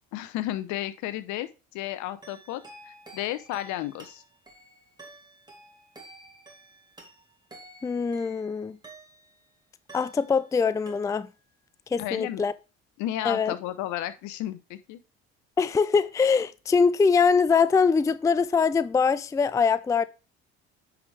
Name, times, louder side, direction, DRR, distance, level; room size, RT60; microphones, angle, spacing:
voice 1, 0.1-4.2 12.0-12.4 13.0-15.0, left 13 dB, 65° left, 0.8 m, -33 dB
sound 1, 2.2-9.5 9.9-10.6 10.9-11.5, right 2 dB, 15° right, 2.5 m, -50 dB
voice 2, 7.8-8.8 9.9-11.3 11.9-12.5 13.2-13.5 15.6-20.1, left 5 dB, 10° left, 0.4 m, -23 dB
9.7 x 5.0 x 3.3 m
hypercardioid pair, 70°, 31 cm